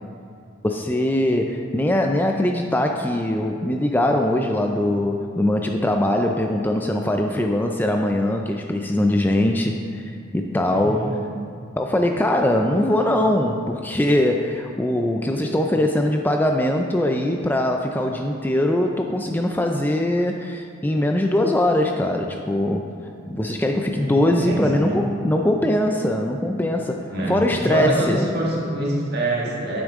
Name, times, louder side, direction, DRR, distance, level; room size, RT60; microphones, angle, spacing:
voice 1, 0.6-11.1 11.8-22.9 23.3-28.2, left 1 dB, 10° left, 3 dB, 0.3 m, -21 dB
voice 2, 10.7-11.2 23.9-25.0 27.1-29.8, right 1 dB, 55° right, -3 dB, 1.8 m, -25 dB
8.9 x 8.3 x 3.6 m, 2.4 s
head